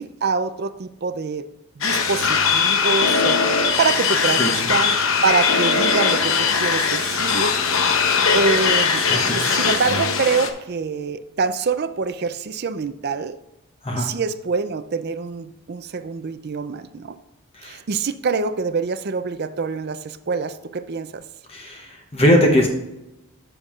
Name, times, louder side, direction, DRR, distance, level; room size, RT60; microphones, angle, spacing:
voice 1, 0.0-1.4 1.8-7.6 8.3-9.1 9.4-13.4 14.0-17.2 17.6-21.2, right 5 dB, 45° right, 12 dB, 0.5 m, -25 dB
sound 1, 1.8-10.5, left 5 dB, 60° left, 0.8 m, -20 dB
voice 2, 4.4-4.7 9.1-9.4 13.8-14.1 17.5-17.8 21.5-22.7, equal, 25° left, 1 dB, 0.8 m, -20 dB
10.5 x 7.1 x 2.4 m, 0.93 s
head